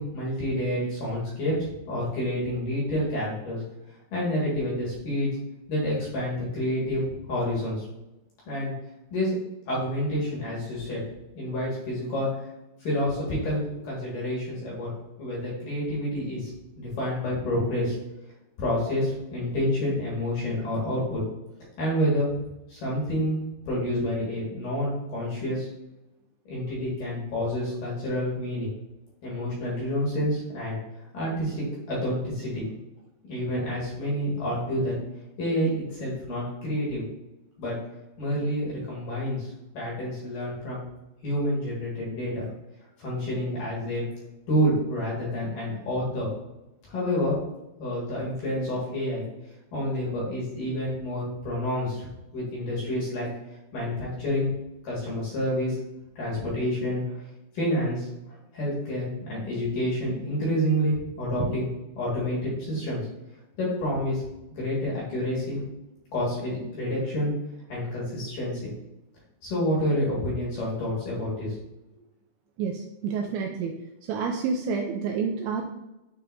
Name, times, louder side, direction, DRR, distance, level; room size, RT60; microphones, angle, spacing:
voice 1, 0.0-1.5 1.9-3.6 4.1-5.3 5.7-7.9 8.5-8.7 9.1-9.3 9.7-11.0 11.3-12.3 12.8-14.9 15.2-16.5 16.8-18.0 18.6-21.2 21.8-22.3 22.7-23.4 23.7-25.7 26.5-28.7 29.2-30.8 31.1-32.6 33.3-35.0 35.4-37.0 37.6-37.8 38.2-40.8 41.2-42.4 43.0-44.1 44.5-46.3 46.9-47.4 47.8-49.2 49.7-52.1 52.3-53.3 53.7-54.5 54.8-55.8 56.2-57.2 57.5-61.7 62.0-63.0 63.6-64.2 64.5-65.6 66.1-67.3 67.7-68.7 69.4-71.5, equal, 55° left, -6 dB, 2.8 m, -28 dB
voice 2, 72.6-73.8 74.1-75.6, right 5 dB, 85° right, 2 dB, 2.7 m, -29 dB
10.0 x 4.1 x 2.7 m, 0.95 s
omnidirectional pair, 5.7 m